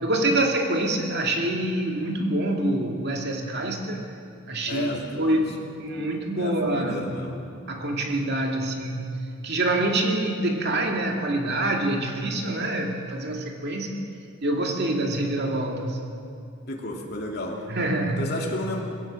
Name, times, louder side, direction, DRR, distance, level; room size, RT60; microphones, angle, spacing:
voice 1, 0.0-4.0 4.5-4.9 5.2-7.1 7.7-14.0 14.4-16.0 17.7-18.3, right 1 dB, 50° right, 2 dB, 2.3 m, -26 dB
voice 2, 4.7-5.4 5.9-6.1 6.4-7.4 16.7-17.6 18.2-18.8, left 1 dB, 45° left, -1 dB, 2.9 m, -32 dB
20.5 x 17.0 x 7.6 m, 2.5 s
head